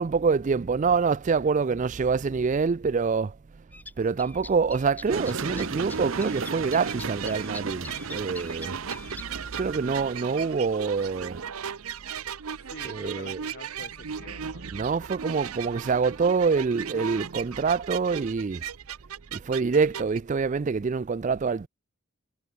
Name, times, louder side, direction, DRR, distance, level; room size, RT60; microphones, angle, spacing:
voice 1, 0.0-3.4 4.0-8.8 9.6-11.4 12.8-13.4 14.7-18.6 19.3-21.7, right 5 dB, 35° right, 0.4 m, -26 dB
sound 1, 3.7-5.6 5.9-9.4, left 2 dB, 10° left, 3.7 m, -43 dB
sound 2, 5.1-11.7, right 4 dB, 60° right, 1.2 m, -37 dB
sound 3, 5.1-20.2, right 8 dB, 85° right, 0.8 m, -37 dB
voice 2, 12.7-14.8, left 3 dB, 45° left, 1.2 m, -46 dB
head